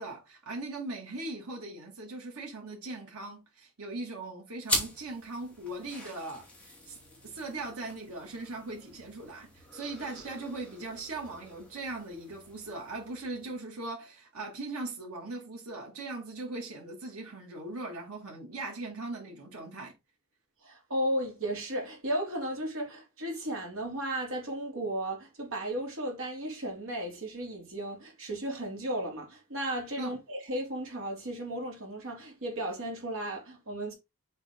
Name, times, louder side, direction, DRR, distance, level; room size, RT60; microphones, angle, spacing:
voice 1, 0.0-7.0 7.2-19.9 30.0-30.2, right 2 dB, 90° right, 2.5 m, -39 dB
sound 1, 4.6-13.6, left 2 dB, 5° left, 2.4 m, -41 dB
voice 2, 20.6-33.9, right 1 dB, 65° right, 3.0 m, -35 dB
7.3 x 4.0 x 3.8 m
head